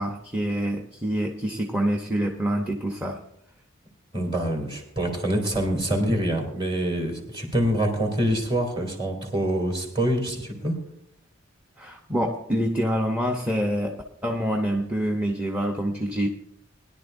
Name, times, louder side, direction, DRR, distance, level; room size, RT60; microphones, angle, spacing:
voice 1, 0.0-3.2 11.8-16.3, equal, 5° right, 2 dB, 0.7 m, -26 dB
voice 2, 4.1-10.8, right 1 dB, 25° right, 1 dB, 2.9 m, -25 dB
20.5 x 11.0 x 2.6 m, 0.74 s
head